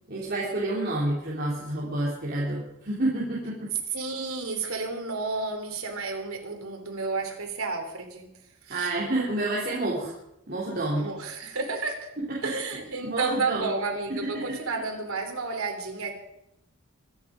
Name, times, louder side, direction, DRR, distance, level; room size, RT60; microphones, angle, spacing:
voice 1, 0.1-3.7 8.7-10.1 10.5-11.1 12.4-12.5 13.0-13.7 14.2-14.6, right 2 dB, 45° right, -6 dB, 3.5 m, -29 dB
voice 2, 3.9-8.3 8.6-8.9 11.0-12.1 12.4-16.1, right 3 dB, 80° right, 3 dB, 3.5 m, -31 dB
24.5 x 10.0 x 5.2 m, 0.84 s
head